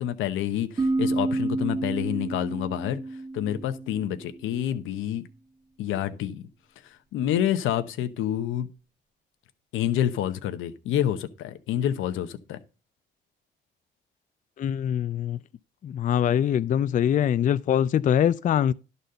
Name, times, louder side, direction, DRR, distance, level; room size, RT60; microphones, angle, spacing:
voice 1, 0.0-3.0 3.3-5.2 5.8-6.4 7.1-8.7 9.7-12.6, left 11 dB, 90° left, 0.9 m, -28 dB
sound 1, 0.8-4.4, right 2 dB, 20° right, 0.8 m, -29 dB
voice 2, 14.6-15.4 15.8-18.7, left 9 dB, 40° left, 0.4 m, -23 dB
11.0 x 4.0 x 6.6 m
cardioid pair, 90°, 20 cm